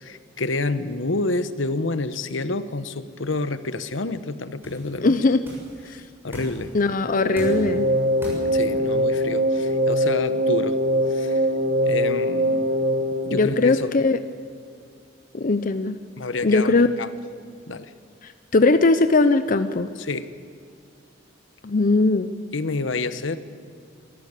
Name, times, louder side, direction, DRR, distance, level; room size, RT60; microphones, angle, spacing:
voice 1, 0.0-5.1 5.9-6.0 6.2-6.7 8.5-10.8 11.1-11.4 11.8-12.7 13.2-13.9 16.2-17.1 17.7-17.9 20.0-20.3 22.5-23.4, left 3 dB, 75° left, 13 dB, 1.0 m, -28 dB
sound 1, 3.1-9.1, equal, 10° right, 7.2 m, -40 dB
voice 2, 5.0-5.4 5.9-6.0 6.7-7.9 13.3-14.2 15.3-16.0 16.4-16.9 18.2-19.9 21.6-22.3, left 3 dB, 45° left, 11 dB, 0.7 m, -20 dB
sound 2, 7.0-14.3, equal, 50° right, 1.3 m, -23 dB
26.0 x 13.5 x 8.3 m, 2.2 s
head